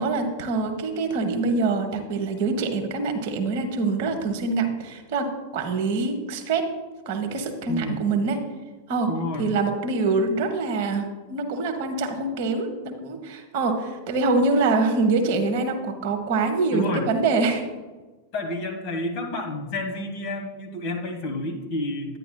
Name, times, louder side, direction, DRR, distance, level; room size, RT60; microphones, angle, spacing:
voice 1, 0.0-6.7 7.1-8.4 8.9-9.1 9.4-17.7 21.3-21.4, right 3 dB, 50° right, 6 dB, 1.1 m, -25 dB
voice 2, 7.7-8.0 9.1-9.5 16.7-17.0 18.3-22.2, left 2 dB, 45° left, 2 dB, 1.7 m, -30 dB
10.0 x 9.8 x 2.3 m, 1.2 s
figure-of-eight pair, 90°, 0 cm